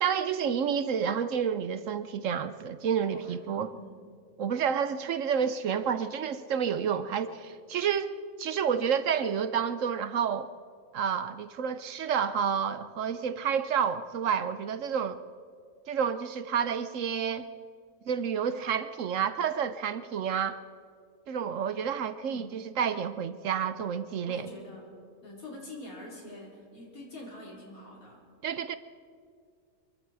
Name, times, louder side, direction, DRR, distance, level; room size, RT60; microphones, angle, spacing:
voice 1, 0.0-3.7 4.4-10.5 10.9-15.2 15.9-17.5 18.1-20.6 21.3-24.5 28.4-28.8, right 7 dB, 65° right, 12 dB, 1.0 m, -29 dB
voice 2, 3.1-3.9 22.3-22.6 24.2-24.9 25.2-28.2, left 1 dB, 75° left, -3 dB, 5.2 m, -45 dB
25.0 x 24.0 x 4.7 m, 2.2 s
omnidirectional pair, 1.5 m